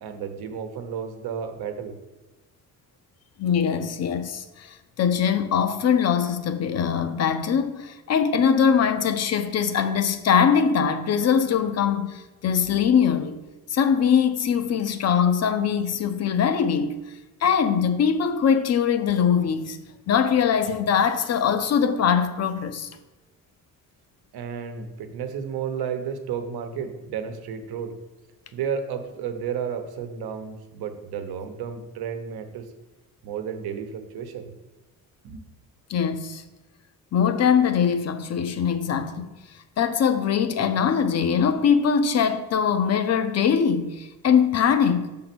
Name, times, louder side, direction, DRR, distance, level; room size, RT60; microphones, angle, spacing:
voice 1, 0.0-2.0 24.3-27.9 28.5-32.7 33.2-34.5 35.2-35.4, right 7 dB, 85° right, 1.0 m, -32 dB
voice 2, 3.4-13.4 13.7-17.0 17.4-19.8 20.1-22.9 35.9-36.4 37.1-39.3 39.8-45.1, left 7 dB, 45° left, 0.6 m, -22 dB
6.7 x 3.7 x 6.0 m
cardioid pair, 150°, 37 cm